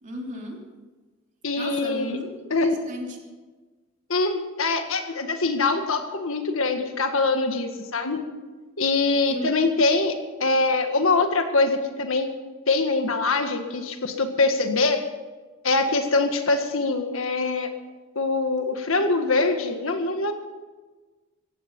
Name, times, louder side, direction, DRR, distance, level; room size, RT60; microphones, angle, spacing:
voice 1, 0.0-0.6 1.6-3.2 9.3-9.5 9.9-10.0, equal, 35° right, 1 dB, 3.2 m, -35 dB
voice 2, 1.4-2.2 2.5-2.8 4.1-8.2 8.8-10.2 10.4-12.3 12.7-15.0 15.6-17.7 18.2-20.3, left 3 dB, 65° left, 6 dB, 1.8 m, -23 dB
17.0 x 15.5 x 5.5 m, 1.3 s
head